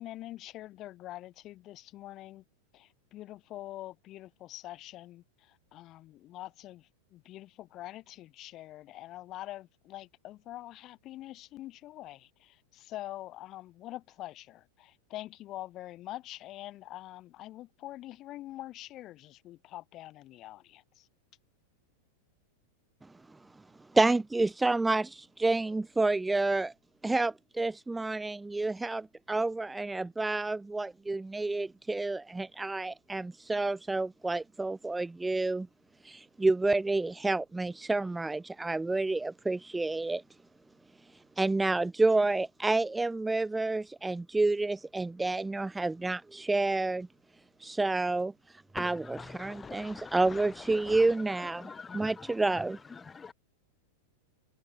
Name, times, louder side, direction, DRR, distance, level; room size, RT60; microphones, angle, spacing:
voice 1, 0.0-2.4 2.7-21.1, left 15 dB, 25° left, 5.5 m, -45 dB
voice 2, 23.9-26.7 27.0-35.7 36.0-40.2 41.1-47.1 47.6-52.8, right 2 dB, 5° right, 0.7 m, -29 dB
voice 3, 48.8-53.3, left 5 dB, 10° left, 1.9 m, -45 dB
supercardioid pair, 170°, 0 cm